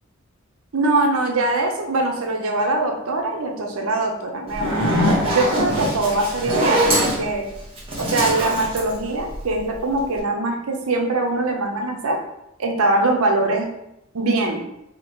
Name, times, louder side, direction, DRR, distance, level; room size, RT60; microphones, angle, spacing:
voice 1, 0.7-7.4 8.0-12.2 12.6-13.7 14.1-14.6, right 2 dB, 80° right, 2 dB, 0.7 m, -22 dB
Zipper (clothing), 4.5-9.7, equal, 30° right, 1.0 m, -22 dB
2.9 x 2.8 x 4.3 m, 0.83 s
head